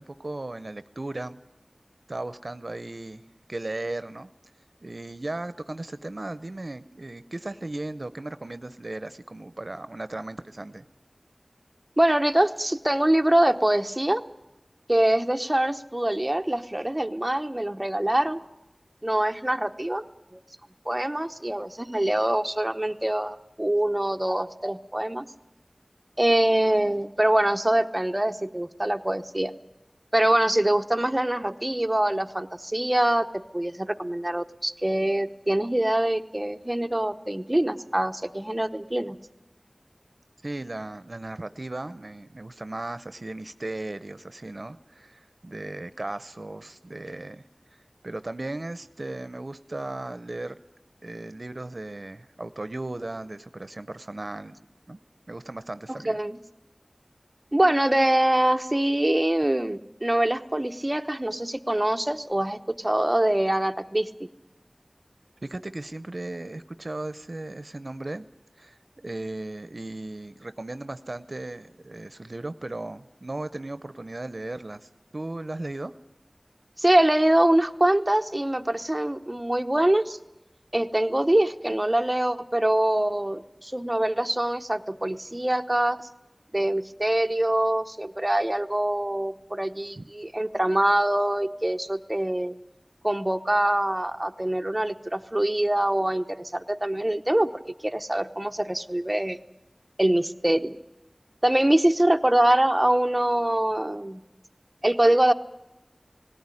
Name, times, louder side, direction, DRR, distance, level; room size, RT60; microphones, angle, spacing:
voice 1, 0.0-1.4 2.1-3.2 3.5-4.3 4.8-10.8 40.4-47.4 48.0-50.6 51.0-54.6 54.9-55.0 55.3-56.2 65.4-68.3 68.6-75.9 90.0-90.1, right 2 dB, 75° right, 13 dB, 0.7 m, -36 dB
voice 2, 12.0-14.2 14.9-18.4 19.0-20.0 20.3-20.4 20.9-25.3 26.2-29.5 30.1-39.2 55.9-56.4 57.5-64.1 76.8-80.2 80.7-86.0 86.5-92.5 93.0-97.5 97.8-99.4 100.0-100.8 101.4-104.2 104.8-105.3, right 1 dB, 25° right, 6 dB, 0.9 m, -24 dB
18.5 x 17.5 x 9.8 m, 0.94 s
wide cardioid pair, 40°, 0 cm